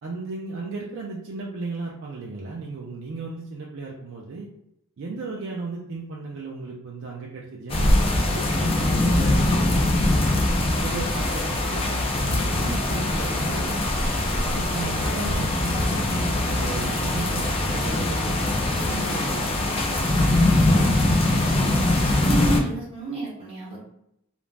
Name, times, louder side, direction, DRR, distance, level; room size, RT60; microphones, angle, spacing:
voice 1, 0.0-4.5 5.0-9.8 10.5-13.8 14.4-19.8, right 3 dB, 60° right, -3 dB, 0.4 m, -35 dB
sound 1, 7.7-22.6, left 1 dB, 25° left, 0.3 m, -22 dB
voice 2, 21.3-23.8, right 1 dB, 25° right, -7 dB, 0.9 m, -31 dB
2.4 x 2.0 x 3.2 m, 0.78 s
head